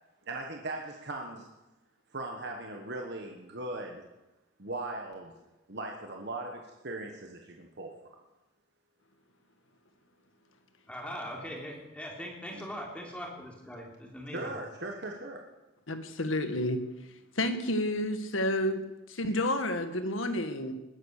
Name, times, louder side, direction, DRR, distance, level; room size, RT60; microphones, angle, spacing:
voice 1, 0.3-1.5 2.1-4.0 4.6-5.3 5.7-7.9 12.5-12.6 14.3-15.4, right 2 dB, 55° right, 2 dB, 1.5 m, -39 dB
voice 2, 10.9-14.4, equal, 5° left, -1 dB, 3.6 m, -41 dB
voice 3, 15.9-16.9 17.4-20.7, left 1 dB, 75° left, 8 dB, 1.6 m, -30 dB
20.5 x 10.5 x 6.7 m, 1.0 s
head